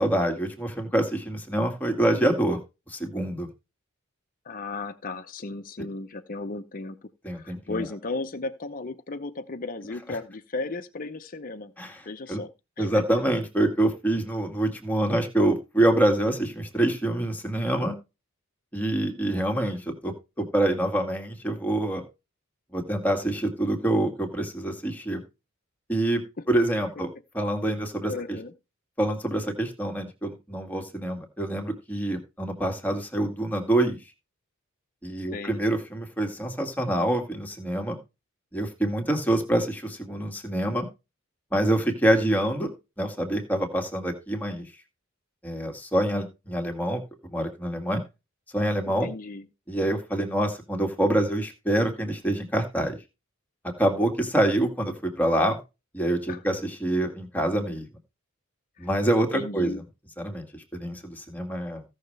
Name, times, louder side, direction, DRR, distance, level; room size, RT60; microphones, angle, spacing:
voice 1, 0.0-2.6 2.9-3.5 7.2-7.6 11.8-12.0 12.3-12.4 12.8-18.0 18.7-22.0 22.7-25.2 25.9-26.2 26.5-27.1 27.3-28.1 29.0-34.0 35.0-38.0 38.5-40.9 41.5-44.7 45.4-48.0 48.5-49.1 49.7-53.0 53.8-55.6 55.9-57.9 58.8-59.7 60.2-60.5 60.7-61.8, right 1 dB, 10° left, 2.0 m, -26 dB
voice 2, 4.4-7.0 7.3-11.7 12.1-13.0 26.4-26.5 28.1-28.5 35.3-35.6 48.8-49.5 56.3-56.4 58.8-58.9 59.2-59.8, left 3 dB, 40° left, 0.7 m, -35 dB
16.0 x 6.5 x 3.3 m
head